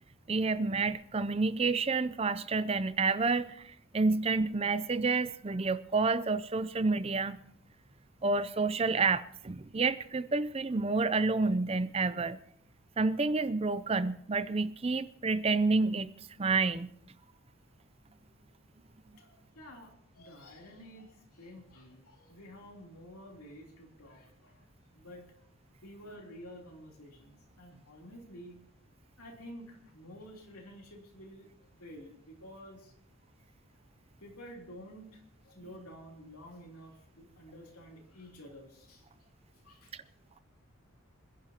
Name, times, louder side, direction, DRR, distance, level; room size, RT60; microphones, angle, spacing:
voice 1, 0.3-3.5 3.9-7.4 8.2-12.4 13.0-16.1 16.4-16.9, right 3 dB, 25° right, 0.5 m, -29 dB
voice 2, 19.1-24.6 24.9-25.2 25.8-28.6 29.2-32.9 34.2-39.0 39.6-39.9, equal, 90° left, 3.4 m, -50 dB
26.5 x 11.0 x 2.9 m
head